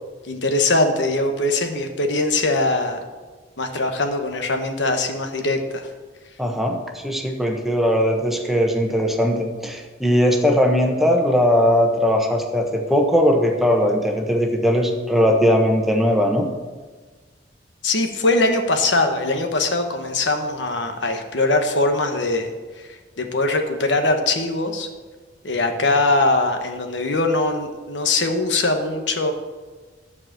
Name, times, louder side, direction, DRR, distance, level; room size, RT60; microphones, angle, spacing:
voice 1, 0.0-3.0 3.6-5.9 17.8-22.5 22.8-24.9 25.4-29.3, left 2 dB, 70° left, 5 dB, 1.2 m, -21 dB
voice 2, 6.4-16.5, equal, ahead, 2 dB, 1.1 m, -19 dB
13.0 x 4.8 x 7.6 m, 1.4 s
head